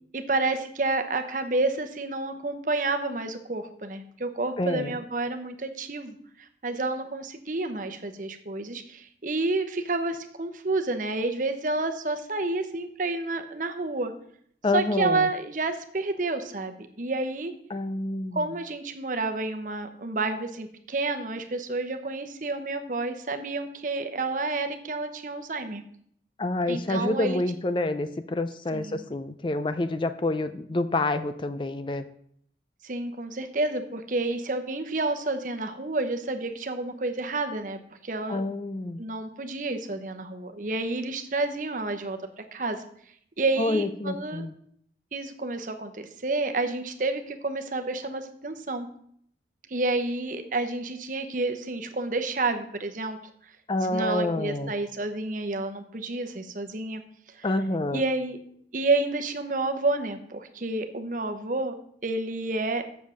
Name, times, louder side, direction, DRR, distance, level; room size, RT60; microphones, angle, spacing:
voice 1, 0.1-14.1 14.7-17.5 18.3-25.8 26.7-27.4 28.7-29.0 32.8-38.4 39.0-42.2 42.5-42.8 43.4-44.5 45.1-48.9 49.7-53.2 53.9-57.0 57.3-57.5 57.9-58.4 58.7-61.7 62.0-62.8, right 2 dB, 45° right, 7 dB, 0.9 m, -29 dB
voice 2, 4.6-5.0 14.6-15.3 17.7-18.5 26.4-32.0 38.3-39.0 43.6-44.5 53.7-54.7 57.4-58.0, left 2 dB, 30° left, 11 dB, 0.4 m, -28 dB
7.3 x 7.1 x 6.3 m, 0.65 s
head